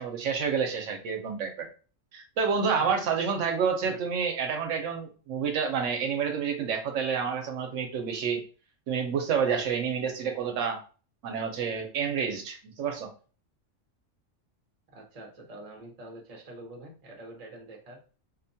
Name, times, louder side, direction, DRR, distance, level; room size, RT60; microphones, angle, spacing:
voice 1, 0.0-1.7 2.1-8.4 8.9-10.8 11.2-13.1, right 6 dB, 75° right, 5 dB, 0.9 m, -29 dB
voice 2, 2.8-3.1 3.8-4.0 14.9-18.0, right 1 dB, 35° right, 1 dB, 0.7 m, -46 dB
2.6 x 2.1 x 2.6 m, 0.38 s
omnidirectional pair, 1.3 m